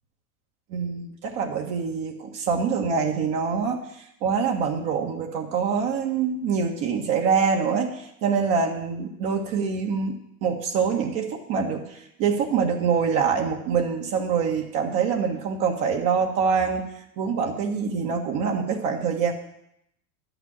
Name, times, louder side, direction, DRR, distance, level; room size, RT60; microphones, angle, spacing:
voice 1, 0.7-16.8 17.2-19.3, right 6 dB, 55° right, 1 dB, 1.6 m, -25 dB
11.0 x 5.9 x 8.8 m, 0.77 s
supercardioid pair, 120°, 45 cm